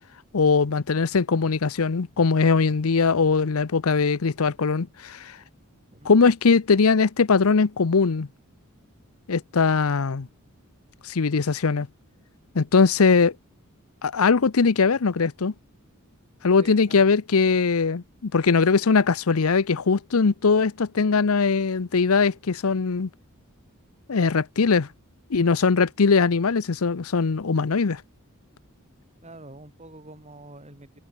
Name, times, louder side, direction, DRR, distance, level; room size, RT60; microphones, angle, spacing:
voice 1, 0.3-5.4 6.0-8.3 9.3-10.3 11.0-11.9 12.5-13.3 14.0-15.5 16.4-23.1 24.1-24.9 25.3-28.0, left 4 dB, 75° left, 0.7 m, -21 dB
voice 2, 16.6-17.0 29.2-31.0, right 2 dB, 30° right, 7.8 m, -45 dB
head